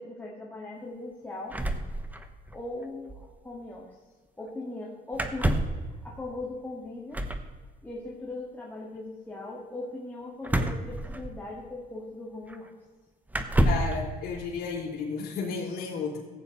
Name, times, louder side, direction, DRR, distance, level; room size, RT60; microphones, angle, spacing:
voice 1, 0.0-1.6 2.5-3.9 4.4-7.2 7.8-12.7, left 2 dB, 10° left, -4 dB, 2.0 m, -39 dB
sound 1, 1.5-2.6 2.8-2.9 3.1-3.3 5.1-5.9 7.1-7.5 10.4-11.6 12.5-12.6 13.3-14.0, right 1 dB, 10° right, 1.0 m, -28 dB
voice 2, 13.6-16.2, left 5 dB, 65° left, -4 dB, 3.5 m, -33 dB
15.0 x 8.9 x 4.1 m, 1.5 s
cardioid pair, 110°, 17 cm